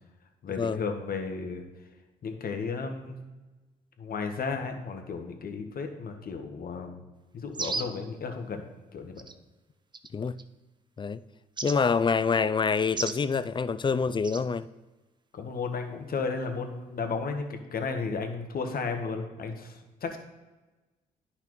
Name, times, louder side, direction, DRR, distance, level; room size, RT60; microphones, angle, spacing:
voice 1, 0.4-1.6 2.2-3.2 4.0-7.0 7.3-8.6 8.9-9.2 15.3-20.2, left 4 dB, 55° left, 1.2 m, -34 dB
sound 1, 7.5-8.0 9.2-9.3 9.9-10.4 11.6-11.8 12.9-13.2 14.2-14.4, right 4 dB, 25° right, 0.6 m, -34 dB
voice 2, 11.6-14.7, left 5 dB, 25° left, 0.4 m, -26 dB
10.0 x 5.7 x 3.1 m
hypercardioid pair, 50°, 18 cm